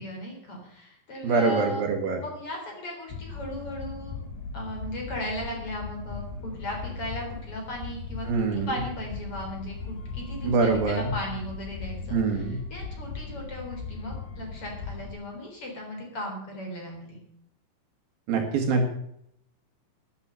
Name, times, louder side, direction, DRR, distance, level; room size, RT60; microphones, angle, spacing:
voice 1, 0.0-1.8 2.2-4.2 4.5-17.2, equal, 35° left, 1 dB, 4.4 m, -37 dB
voice 2, 1.2-2.2 8.3-8.7 10.4-11.1 12.1-12.6 18.3-18.9, right 4 dB, 65° right, 3 dB, 3.5 m, -24 dB
Death Magic prolonged, 3.1-15.1, left 4 dB, 75° left, 4.9 m, -38 dB
12.0 x 9.8 x 8.8 m, 0.72 s
omnidirectional pair, 4.9 m